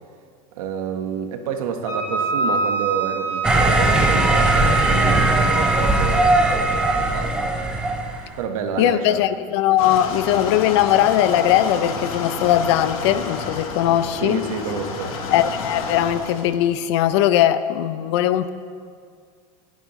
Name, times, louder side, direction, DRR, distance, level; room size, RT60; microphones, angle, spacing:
voice 1, 0.6-6.4 6.9-7.4 8.4-9.2 14.2-15.1, right 6 dB, 75° right, 1.3 m, -28 dB
Wind instrument woodwind instrument, 1.9-7.1, right 3 dB, 30° left, 2.8 m, -25 dB
sound 1, 3.4-8.2, right 2 dB, 5° right, 0.5 m, -19 dB
voice 2, 8.8-14.4 15.3-18.5, left 12 dB, 50° left, 0.5 m, -19 dB
sound 2, 9.8-16.5, left 4 dB, 80° left, 1.5 m, -30 dB
20.0 x 9.3 x 3.1 m
supercardioid pair, 180°, 18 cm